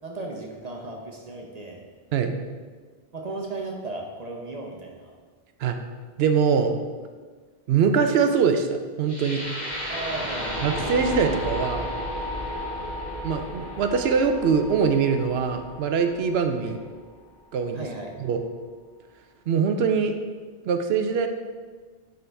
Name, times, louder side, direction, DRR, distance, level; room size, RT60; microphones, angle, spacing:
voice 1, 0.0-1.8 3.1-5.1 9.9-10.8 16.6-16.7 17.7-18.1, right 2 dB, 45° right, 0 dB, 0.9 m, -36 dB
voice 2, 6.2-6.7 7.7-8.7 9.0-9.4 10.6-11.9 13.2-16.8 17.5-17.9 18.2-18.4 19.5-20.1 20.6-21.3, right 6 dB, 90° right, 6 dB, 0.8 m, -23 dB
sound 1, 9.1-17.1, equal, 45° left, 1.5 m, -33 dB
10.0 x 3.9 x 3.4 m, 1.5 s
omnidirectional pair, 1.0 m